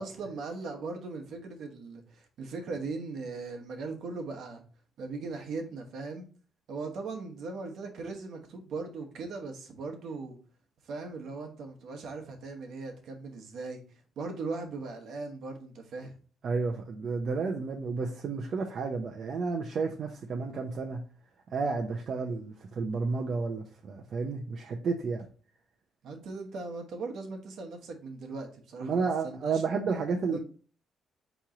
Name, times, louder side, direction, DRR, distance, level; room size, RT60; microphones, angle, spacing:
voice 1, 0.0-4.6 5.0-6.3 6.7-10.4 10.8-13.8 14.2-16.1 26.0-29.6 30.3-30.4, right 3 dB, 70° right, 1.0 m, -39 dB
voice 2, 16.4-21.0 21.5-25.3 28.8-30.4, right 4 dB, 55° right, 0.6 m, -31 dB
4.4 x 3.0 x 3.7 m
cardioid pair, 90°, 0 cm